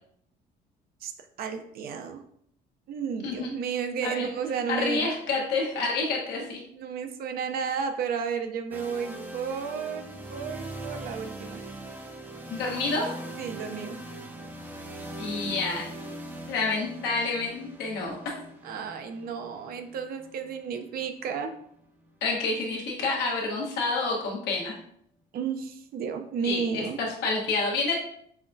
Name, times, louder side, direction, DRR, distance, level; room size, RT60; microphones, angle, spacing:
voice 1, 1.4-2.2 2.9-5.1 6.4-6.5 6.7-11.6 13.4-13.9 18.6-21.5 25.3-27.0, right 6 dB, 65° right, 6 dB, 0.5 m, -32 dB
voice 2, 4.7-6.6 12.5-13.1 15.2-15.9 16.5-18.2 22.2-24.8 26.4-28.0, left 3 dB, 80° left, -2 dB, 1.1 m, -28 dB
sound 1, 8.7-22.6, right 1 dB, 10° right, 0.6 m, -41 dB
5.6 x 2.3 x 2.6 m, 0.68 s
cardioid pair, 110°, 17 cm